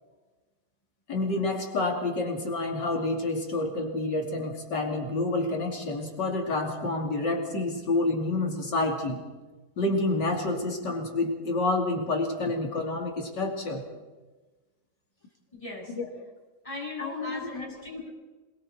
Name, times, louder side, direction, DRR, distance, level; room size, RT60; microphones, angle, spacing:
voice 1, 1.1-9.2 9.8-13.8 16.0-16.1 17.0-17.6, left 2 dB, 70° left, 2 dB, 3.4 m, -28 dB
voice 2, 15.5-16.0 16.6-18.1, left 2 dB, 15° left, -3 dB, 7.6 m, -38 dB
26.5 x 22.5 x 4.4 m, 1.2 s
omnidirectional pair, 2.0 m